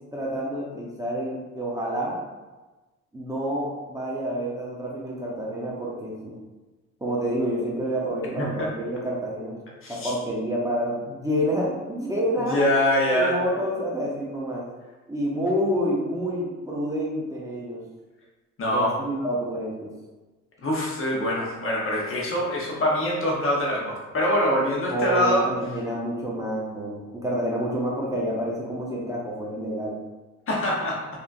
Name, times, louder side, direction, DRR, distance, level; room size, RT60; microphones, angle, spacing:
voice 1, 0.1-2.2 3.1-6.3 7.0-9.6 9.9-12.6 13.1-14.7 15.1-17.8 18.7-19.9 24.9-30.0, equal, 10° right, -5 dB, 0.7 m, -28 dB
voice 2, 9.8-10.1 12.4-13.4 18.6-18.9 20.6-25.5 30.5-31.0, left 1 dB, 45° left, -3 dB, 1.0 m, -24 dB
3.4 x 2.7 x 2.5 m, 1.2 s
cardioid pair, 90°, 30 cm